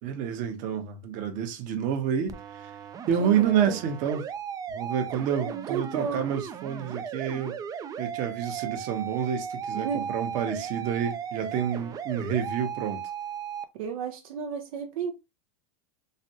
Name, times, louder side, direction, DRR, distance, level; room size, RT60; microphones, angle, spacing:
voice 1, 0.0-2.7 3.1-4.3 4.7-7.6 8.0-13.0, right 8 dB, 45° right, 0.9 m, -29 dB
sound 1, 2.3-13.6, right 8 dB, 20° right, 0.3 m, -36 dB
voice 2, 3.2-3.8 5.5-6.3 9.7-10.1 13.7-15.1, right 7 dB, 75° right, 0.6 m, -32 dB
3.3 x 2.1 x 2.8 m
supercardioid pair, 125°, 18 cm